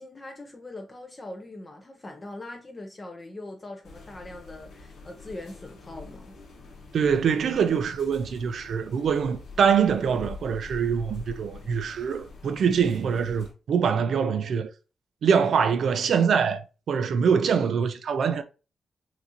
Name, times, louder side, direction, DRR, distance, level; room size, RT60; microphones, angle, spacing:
voice 1, 0.0-6.4, left 2 dB, 20° left, 0.6 m, -41 dB
sound 1, 3.8-13.5, left 3 dB, 70° left, 1.4 m, -45 dB
voice 2, 6.9-14.7 15.2-18.4, right 6 dB, 60° right, 0.4 m, -24 dB
5.7 x 2.6 x 2.8 m
wide cardioid pair, 150°, 0 cm